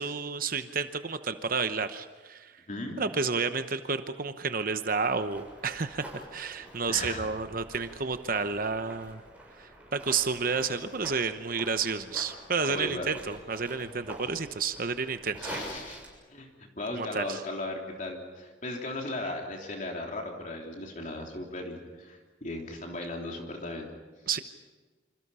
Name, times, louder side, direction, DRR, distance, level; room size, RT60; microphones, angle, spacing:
voice 1, 0.0-2.5 3.0-9.2 9.6-15.5 17.0-17.4 24.3-24.4, right 5 dB, 50° right, 9 dB, 0.9 m, -31 dB
voice 2, 2.7-3.0 6.5-7.3 12.7-13.1 15.4-16.0 16.3-16.5 16.8-23.9, left 2 dB, 40° left, 1 dB, 3.3 m, -37 dB
sound 1, 4.9-16.1, right 1 dB, 10° right, 7.1 m, -46 dB
28.5 x 26.5 x 5.6 m, 1.4 s
head